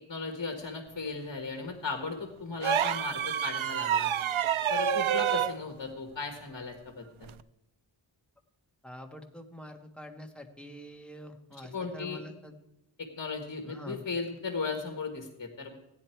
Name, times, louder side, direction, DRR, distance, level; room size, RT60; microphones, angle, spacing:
voice 1, 0.1-4.1 4.7-7.3 11.7-12.2 13.0-15.8, left 4 dB, 45° left, 4 dB, 1.6 m, -36 dB
sound 1, 2.6-5.6 7.2-7.4, right 9 dB, 85° right, 0.6 m, -28 dB
voice 2, 8.8-12.6 13.6-14.0, equal, ahead, 3 dB, 1.4 m, -45 dB
16.0 x 10.0 x 4.5 m, 0.91 s
wide cardioid pair, 90°, 47 cm